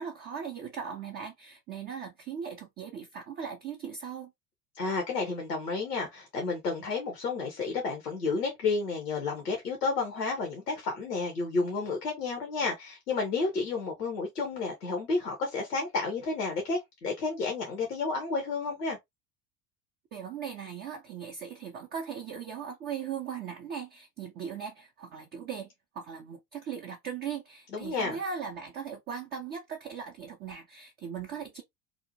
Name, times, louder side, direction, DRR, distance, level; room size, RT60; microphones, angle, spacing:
voice 1, 0.0-4.3 20.1-25.7 25.9-31.6, right 7 dB, 25° right, 0.3 m, -39 dB
voice 2, 4.7-19.0 27.7-28.2, left 4 dB, 80° left, 0.8 m, -31 dB
2.7 x 2.1 x 2.5 m
figure-of-eight pair, 70°, 47 cm